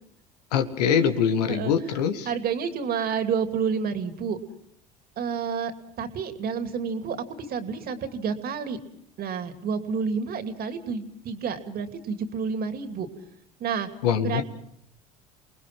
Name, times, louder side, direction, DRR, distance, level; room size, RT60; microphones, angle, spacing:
voice 1, 0.5-2.3 14.0-14.4, left 7 dB, 80° left, 8 dB, 1.9 m, -23 dB
voice 2, 2.2-4.4 5.2-5.7 6.0-8.8 9.2-13.1 13.6-13.9 14.2-14.4, right 6 dB, 50° right, 8 dB, 2.7 m, -29 dB
28.5 x 20.0 x 6.0 m, 0.71 s
hypercardioid pair, 70°, 20 cm